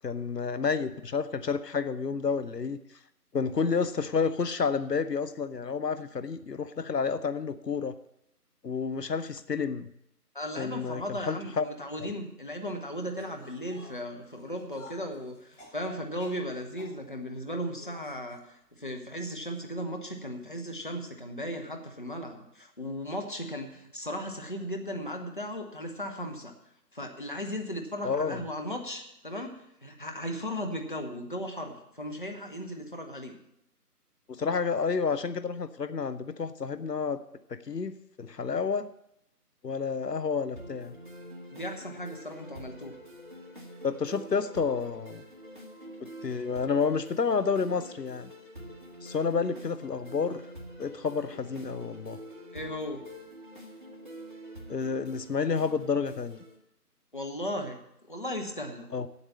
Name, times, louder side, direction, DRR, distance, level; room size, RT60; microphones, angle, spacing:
voice 1, 0.0-2.8 3.3-8.0 8.6-9.9 10.6-11.7 28.0-28.4 34.3-37.2 37.7-38.9 39.6-40.9 43.8-45.2 46.0-48.3 49.0-50.4 50.8-52.2 54.7-56.4 58.9-59.1, left 5 dB, 80° left, 12 dB, 0.8 m, -30 dB
voice 2, 10.3-26.5 26.9-29.5 29.8-33.4 41.5-42.9 52.5-53.0 57.1-57.8 58.1-58.9, equal, 30° left, 3 dB, 0.9 m, -36 dB
sound 1, 13.1-17.0 17.8-18.4 19.2-19.5 19.8-19.9 20.8-20.9, left 1 dB, 45° left, 2.7 m, -52 dB
sound 2, 40.6-56.6, equal, 30° right, 1.2 m, -46 dB
8.7 x 8.0 x 7.4 m, 0.80 s
figure-of-eight pair, 160°, 48 cm